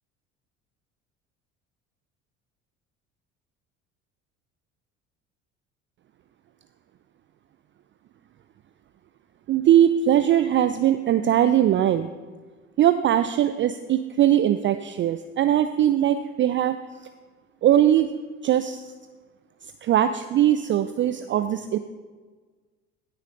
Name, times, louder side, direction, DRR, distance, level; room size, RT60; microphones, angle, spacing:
voice 1, 9.5-12.1 12.8-16.8 17.6-18.1 18.4-18.8 19.8-21.8, right 11 dB, 30° right, 10 dB, 0.4 m, -20 dB
15.0 x 6.5 x 3.8 m, 1.4 s
hypercardioid pair, 60°, 38 cm